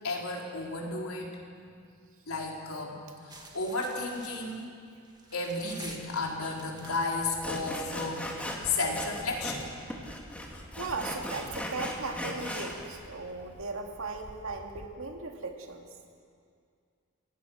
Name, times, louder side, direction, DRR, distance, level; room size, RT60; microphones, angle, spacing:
voice 1, 0.0-1.4 2.3-4.8 5.3-8.4 8.6-9.7, left 3 dB, 85° left, -1 dB, 4.1 m, -33 dB
sound 1, 3.3-14.9, right 1 dB, 20° right, 2.1 m, -51 dB
Sawing, 6.4-6.5 6.8-7.0 7.4-9.7 9.9-12.7, left 1 dB, 5° left, 2.5 m, -38 dB
voice 2, 10.8-15.9, right 3 dB, 70° right, 2 dB, 2.5 m, -37 dB
30.0 x 17.5 x 6.3 m, 2.2 s
head